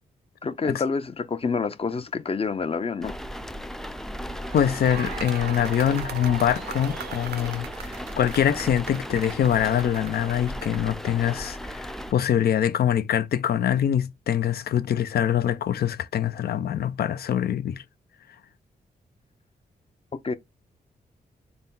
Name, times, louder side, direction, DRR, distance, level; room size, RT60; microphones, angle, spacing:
voice 1, 0.4-3.1 20.2-20.3, left 4 dB, 35° left, 0.7 m, -27 dB
sound 1, 3.0-12.1, equal, 5° left, 0.4 m, -36 dB
sound 2, 4.3-10.9, right 8 dB, 90° right, 0.6 m, -39 dB
voice 2, 4.5-17.8, left 10 dB, 75° left, 0.5 m, -24 dB
4.1 x 2.2 x 3.7 m
cardioid pair, 65°, 16 cm